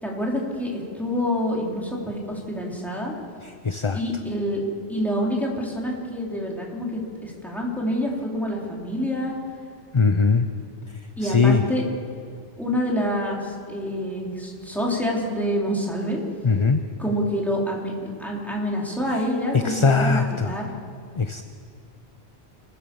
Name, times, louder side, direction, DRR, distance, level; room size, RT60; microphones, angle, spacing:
voice 1, 0.0-3.1 3.9-4.6 4.9-6.9 7.2-9.4 11.2-11.8 12.6-16.2 17.0-20.7, equal, ahead, -3 dB, 3.8 m, -27 dB
voice 2, 3.6-4.0 9.9-10.5 11.2-11.6 16.4-16.8 19.6-20.6 21.2-21.4, left 4 dB, 30° left, 8 dB, 0.6 m, -20 dB
27.0 x 15.5 x 7.1 m, 2.3 s
omnidirectional pair, 1.2 m